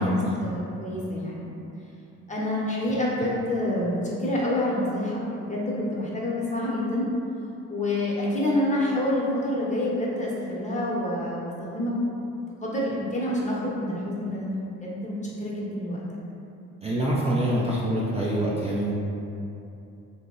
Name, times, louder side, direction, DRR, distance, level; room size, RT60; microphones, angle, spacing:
voice 1, 0.0-1.5 2.3-7.1 7.7-12.0 12.4-16.0, left 1 dB, 20° left, -5 dB, 0.8 m, -27 dB
voice 2, 16.8-18.9, right 1 dB, 20° right, -6 dB, 0.4 m, -25 dB
2.7 x 2.0 x 3.7 m, 2.7 s
supercardioid pair, 65°, 33 cm